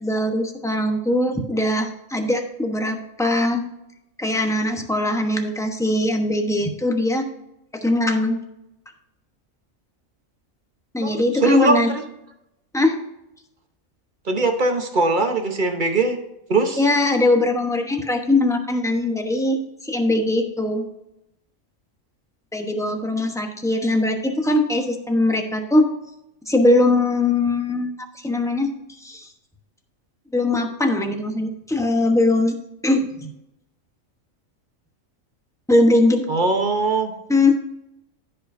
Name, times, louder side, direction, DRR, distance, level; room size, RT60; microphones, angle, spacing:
voice 1, 0.0-3.6 4.2-7.3 7.7-8.4 10.9-11.9 12.7-13.0 16.8-20.8 22.5-25.9 26.5-27.9 28.2-28.7 29.0-29.3 30.3-32.6 32.8-33.3 35.7-36.3 37.3-37.6, left 2 dB, 5° left, 3 dB, 0.9 m, -21 dB
voice 2, 11.0-12.0 14.3-16.2 16.5-16.8 36.3-37.1, right 3 dB, 40° right, 5 dB, 1.0 m, -21 dB
14.5 x 5.6 x 2.7 m, 0.87 s
omnidirectional pair, 1.4 m